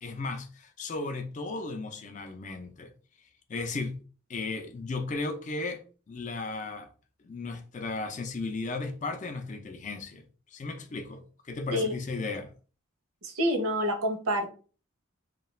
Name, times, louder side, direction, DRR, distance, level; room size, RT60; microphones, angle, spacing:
voice 1, 0.0-2.9 3.5-4.0 4.3-5.8 6.1-6.9 7.2-12.5, left 3 dB, 35° left, 0.3 m, -35 dB
voice 2, 13.2-14.5, equal, 90° right, 0.6 m, -27 dB
2.3 x 2.2 x 3.1 m
head